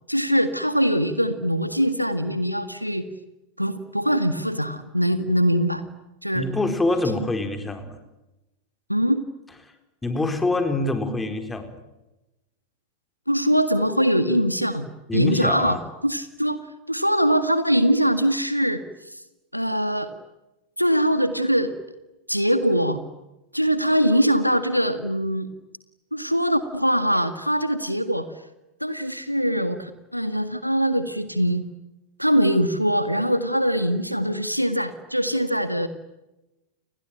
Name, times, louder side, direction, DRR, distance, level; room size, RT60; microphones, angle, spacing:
voice 1, 0.1-3.1 3.6-5.8 6.2-6.5 8.9-9.2 13.3-15.8 16.0-16.6 16.9-18.8 19.1-19.2 19.5-20.1 20.8-21.7 22.3-23.0 23.5-25.5 26.1-28.3 28.8-31.7 32.2-35.9, equal, 90° right, 11 dB, 1.9 m, -22 dB
voice 2, 6.3-8.0 10.0-11.8 15.1-15.8, left 2 dB, 10° left, 7 dB, 4.4 m, -25 dB
29.5 x 21.5 x 9.0 m, 0.99 s
figure-of-eight pair, 90°, 0 cm